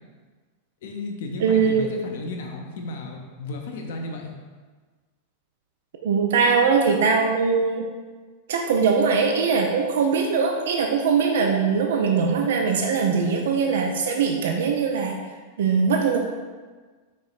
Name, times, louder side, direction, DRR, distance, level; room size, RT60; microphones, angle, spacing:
voice 1, 0.8-4.3, left 2 dB, 55° left, 2 dB, 0.6 m, -34 dB
voice 2, 1.4-1.9 6.0-7.9 8.5-15.2 15.6-16.2, right 5 dB, 60° right, 2 dB, 0.4 m, -21 dB
4.8 x 4.2 x 2.4 m, 1.4 s
figure-of-eight pair, 90°, 0 cm